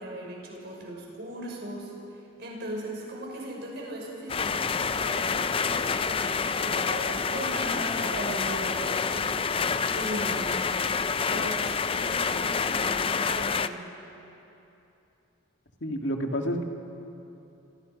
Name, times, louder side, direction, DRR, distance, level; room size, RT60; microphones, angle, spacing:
voice 1, 0.0-1.9 2.4-9.5 9.9-10.6 11.3-13.9, right 1 dB, 55° right, -2 dB, 6.0 m, -38 dB
sound 1, 4.3-13.7, left 5 dB, 25° left, 0.4 m, -28 dB
voice 2, 15.8-16.6, equal, 60° left, 3 dB, 2.2 m, -29 dB
30.0 x 25.0 x 5.4 m, 2.9 s
head